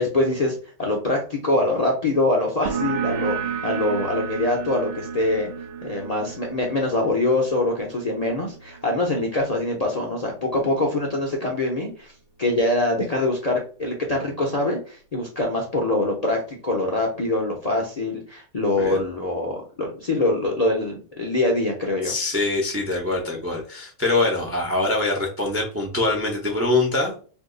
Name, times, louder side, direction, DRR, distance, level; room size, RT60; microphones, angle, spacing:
voice 1, 0.0-3.4 3.6-5.5 5.8-12.1 12.4-22.1, left 2 dB, 45° left, -1 dB, 0.5 m, -24 dB
sound 1, 2.7-9.9, right 7 dB, 60° right, 0.6 m, -32 dB
voice 2, 22.0-27.1, left 2 dB, 25° right, 0 dB, 0.3 m, -24 dB
2.6 x 2.3 x 3.7 m, 0.39 s
omnidirectional pair, 1.4 m